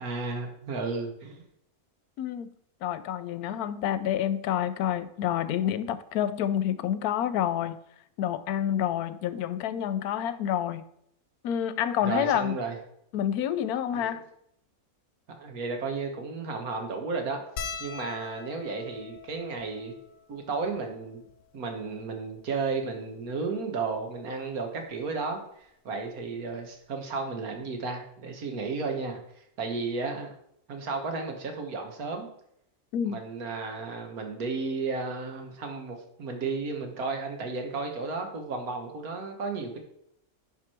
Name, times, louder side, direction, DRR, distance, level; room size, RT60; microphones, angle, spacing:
voice 1, 0.0-1.5 3.4-3.6 12.0-12.8 13.9-14.2 15.4-17.4 17.8-19.9 20.3-21.2 21.5-30.3 30.7-32.3 33.0-39.8, right 4 dB, 75° right, 4 dB, 1.8 m, -33 dB
voice 2, 2.2-2.5 2.8-7.8 8.2-10.8 11.4-12.5 13.1-14.2 32.9-33.2, left 10 dB, 85° left, 14 dB, 1.1 m, -28 dB
sound 1, 17.6-22.2 22.9-23.0 23.2-23.4 24.7-24.9 26.3-26.4 26.7-26.9, left 6 dB, 60° left, 1.0 m, -43 dB
10.0 x 4.7 x 4.4 m, 0.72 s
omnidirectional pair, 1.6 m